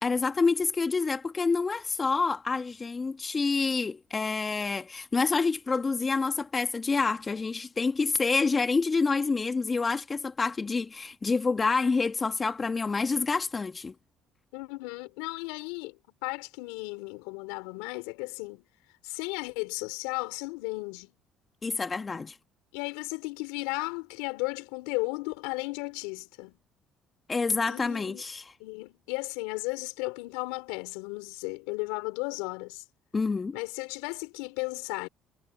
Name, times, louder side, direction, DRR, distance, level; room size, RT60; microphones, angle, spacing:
voice 1, 0.0-13.9 21.6-22.4 27.3-28.5 33.1-33.6, left 4 dB, 30° left, 1.6 m, -27 dB
voice 2, 14.5-18.6 19.0-21.1 22.7-26.6 27.7-28.2 28.6-32.8 33.5-35.1, left 27 dB, 85° left, 4.1 m, -35 dB
supercardioid pair, 65°, 0 cm